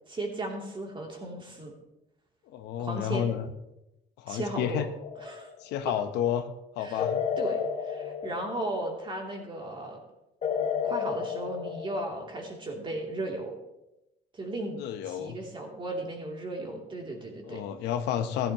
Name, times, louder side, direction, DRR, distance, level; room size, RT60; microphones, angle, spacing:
voice 1, 0.1-1.7 2.8-3.2 4.3-4.9 5.2-5.5 6.8-7.1 7.4-10.0 10.8-13.5 14.3-14.8 15.0-17.6, right 1 dB, 30° right, 0 dB, 2.9 m, -35 dB
voice 2, 2.5-3.5 4.2-4.9 5.6-6.5 6.8-7.2 14.8-15.4 17.4-18.5, left 10 dB, 85° left, 9 dB, 0.9 m, -30 dB
sound 1, 5.0-5.6 7.0-9.1 10.4-12.5, left 7 dB, 40° left, 1.2 m, -32 dB
15.0 x 11.5 x 3.0 m, 0.91 s
cardioid pair, 110°, 17 cm